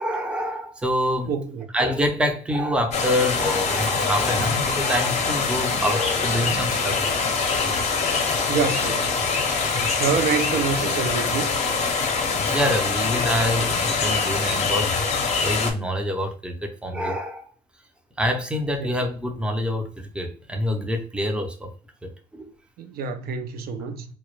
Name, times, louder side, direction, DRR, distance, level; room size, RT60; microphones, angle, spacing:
voice 1, 0.0-1.3 1.7-7.1 12.5-15.0 15.4-17.4 18.2-21.7 22.0-22.5, equal, 5° right, 0.5 m, -26 dB
voice 2, 1.3-1.7 8.5-9.1 10.0-11.5 18.8-18.9 22.8-24.1, right 5 dB, 65° right, 0.4 m, -26 dB
sound 1, 2.9-15.7, left 4 dB, 40° left, 0.6 m, -24 dB
2.1 x 2.0 x 3.0 m
cardioid pair, 110°, 17 cm